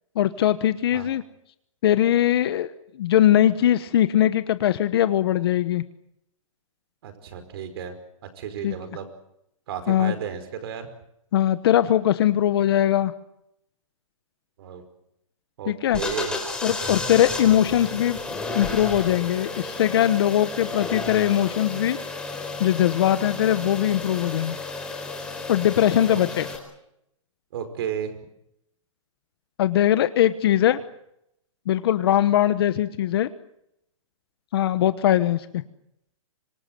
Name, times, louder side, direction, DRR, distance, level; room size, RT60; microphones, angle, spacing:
voice 1, 0.1-1.2 1.8-5.8 8.6-8.7 9.9-10.1 11.3-13.1 15.7-16.0 16.6-18.2 18.5-22.0 22.6-24.6 25.5-26.5 29.6-30.8 31.7-33.3 34.5-35.6, left 11 dB, 50° left, 12 dB, 1.2 m, -21 dB
voice 2, 7.0-8.0 8.4-9.1 9.7-10.9 14.6-14.8 15.6-16.3 26.1-26.2 27.5-28.1, right 8 dB, 50° right, 10 dB, 5.0 m, -33 dB
sound 1, 15.9-26.6, left 3 dB, 5° left, 4.3 m, -32 dB
26.0 x 23.0 x 7.8 m, 0.79 s
hypercardioid pair, 165°, 17 cm